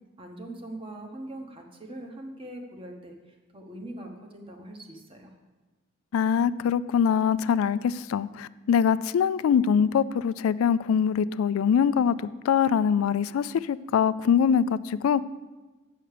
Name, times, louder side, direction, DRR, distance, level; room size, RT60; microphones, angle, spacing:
voice 1, 0.2-5.3, right 1 dB, 25° right, 3 dB, 1.1 m, -42 dB
voice 2, 6.1-15.2, left 7 dB, 90° left, 17 dB, 0.3 m, -23 dB
7.8 x 6.5 x 6.7 m, 1.2 s
head